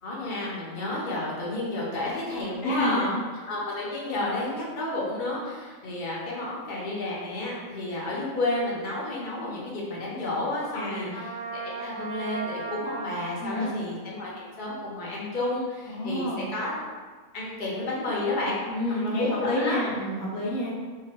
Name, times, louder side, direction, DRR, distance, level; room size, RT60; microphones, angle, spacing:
voice 1, 0.0-3.1 3.5-16.7 17.3-18.6 19.0-19.8, left 2 dB, 40° left, -5 dB, 0.8 m, -31 dB
voice 2, 2.6-3.2 10.7-11.1 13.4-13.8 15.9-16.5 18.7-20.7, left 1 dB, 75° left, -4 dB, 1.2 m, -29 dB
Trumpet, 11.1-13.6, right 3 dB, 25° right, 0.7 m, -36 dB
2.9 x 2.3 x 4.2 m, 1.5 s
omnidirectional pair, 1.5 m